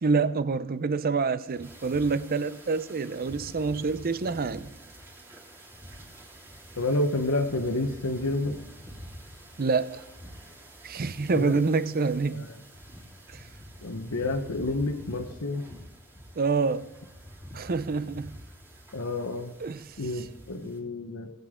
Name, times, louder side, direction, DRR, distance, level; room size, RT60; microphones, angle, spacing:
voice 1, 0.0-4.7 9.6-10.0 10.8-12.5 16.4-16.9 17.5-18.4 19.6-20.3, right 4 dB, 45° right, 0.6 m, -27 dB
sound 1, 1.5-20.8, equal, 10° right, 3.3 m, -47 dB
voice 2, 6.8-8.6 11.3-11.6 12.3-12.5 13.8-15.6 18.9-19.5 20.0-21.3, left 2 dB, 75° left, 1.0 m, -29 dB
19.5 x 8.2 x 3.7 m
head